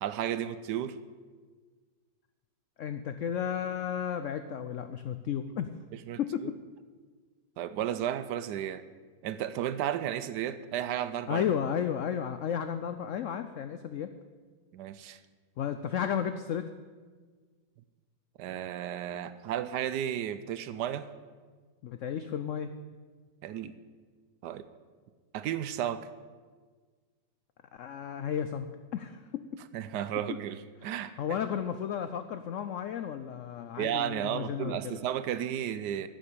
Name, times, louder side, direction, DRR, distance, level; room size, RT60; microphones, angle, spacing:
voice 1, 0.0-1.0 6.1-6.2 7.6-8.8 9.2-11.4 14.7-15.2 18.4-21.1 23.4-23.7 24.4-24.7 25.3-26.1 29.7-31.1 33.8-36.1, right 10 dB, 75° right, 13 dB, 1.2 m, -33 dB
voice 2, 2.8-5.7 6.2-6.5 11.3-14.1 15.6-16.7 21.8-22.7 27.7-29.6 30.3-30.4 30.8-30.9 31.2-35.0, left 8 dB, 80° left, 10 dB, 0.7 m, -33 dB
10.0 x 7.5 x 8.9 m, 1.5 s
omnidirectional pair, 1.9 m